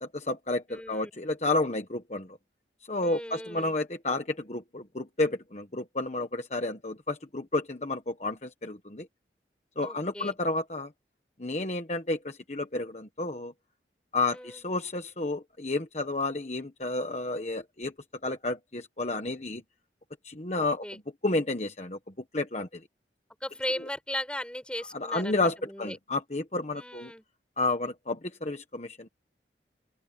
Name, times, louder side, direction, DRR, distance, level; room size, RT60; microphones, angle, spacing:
voice 1, 0.1-2.4 2.9-9.1 9.8-10.9 11.4-13.5 14.1-17.9 18.2-19.6 20.2-22.0 22.3-22.8 24.9-27.1 27.6-29.1, left 2 dB, 40° left, 1.2 m, -31 dB
voice 2, 0.7-1.1 3.0-3.7 9.8-10.3 14.3-14.6 20.5-21.0 23.4-26.0 26.8-27.2, left 1 dB, 5° left, 6.9 m, -37 dB
open air
head